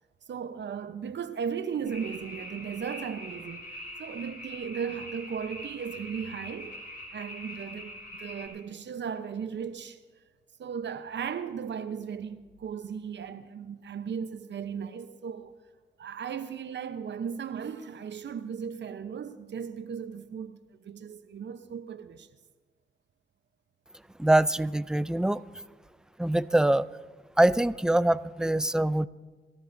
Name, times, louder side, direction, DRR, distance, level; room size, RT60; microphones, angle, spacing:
voice 1, 0.3-3.6 4.0-6.8 7.1-10.0 10.6-15.5 16.0-22.3, right 7 dB, 65° right, 0.9 m, -36 dB
sound 1, 1.9-8.5, left 1 dB, 50° left, 5.4 m, -43 dB
voice 2, 24.2-25.4 26.2-26.9 27.4-29.1, right 1 dB, 5° right, 0.4 m, -24 dB
27.5 x 13.0 x 2.7 m
supercardioid pair, 50°, 20 cm